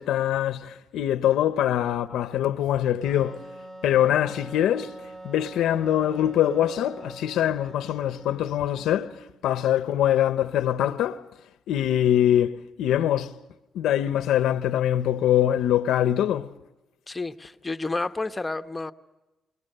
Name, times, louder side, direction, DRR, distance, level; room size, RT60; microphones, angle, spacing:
voice 1, 0.0-3.4 3.8-4.9 5.2-9.1 9.4-11.2 11.7-13.3 13.7-16.5, left 11 dB, 85° left, 0.8 m, -23 dB
Wind instrument woodwind instrument, 3.0-9.5, right 1 dB, 40° right, 3.8 m, -44 dB
voice 2, 17.1-18.9, left 3 dB, 20° left, 0.9 m, -30 dB
29.0 x 20.5 x 6.7 m
cardioid pair, 90°, 0 cm